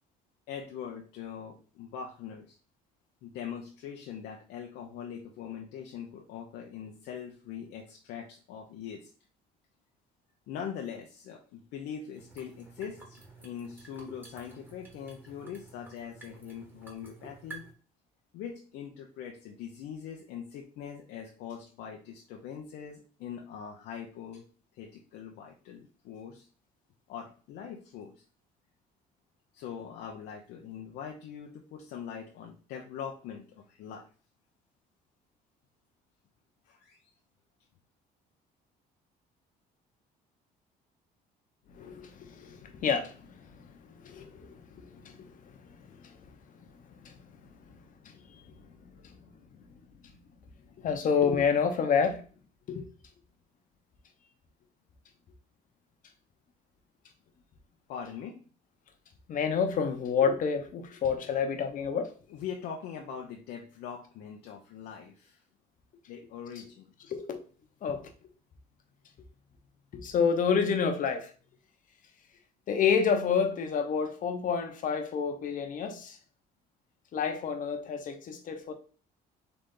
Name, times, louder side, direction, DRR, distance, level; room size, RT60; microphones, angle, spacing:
voice 1, 0.5-2.6 3.2-9.1 10.5-17.7 18.3-24.4 24.7-26.5 27.1-28.2 29.5-34.1 36.7-37.0 57.9-58.4 62.3-65.4 66.1-66.9, left 8 dB, 85° left, 1 dB, 0.7 m, -42 dB
sound 1, 12.1-17.7, right 3 dB, 10° right, 1.3 m, -50 dB
voice 2, 41.7-46.2 47.0-47.2 47.7-47.8 48.0-49.3 50.8-52.2 52.7-52.8 59.3-62.1 67.1-67.4 67.8-68.1 69.9-71.3 72.7-76.2 77.1-78.7, left 6 dB, 50° left, 6 dB, 0.9 m, -29 dB
3.9 x 3.3 x 3.7 m, 0.39 s
cardioid pair, 110°, 17 cm